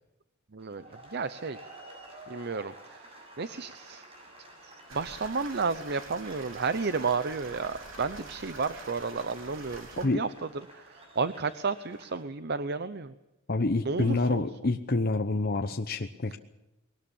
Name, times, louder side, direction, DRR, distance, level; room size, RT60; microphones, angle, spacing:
voice 1, 0.5-0.8 1.1-1.6 2.3-3.1 3.4-4.0 4.6-10.3 10.7-13.1 13.8-14.4, right 4 dB, 50° right, 13 dB, 0.7 m, -32 dB
sound 1, 0.6-12.2, right 1 dB, 30° right, 6.9 m, -51 dB
sound 2, 4.9-10.1, right 3 dB, 70° right, 3.9 m, -46 dB
voice 2, 13.5-16.4, left 3 dB, 45° left, 5 dB, 0.9 m, -27 dB
21.0 x 19.5 x 7.2 m, 0.95 s
head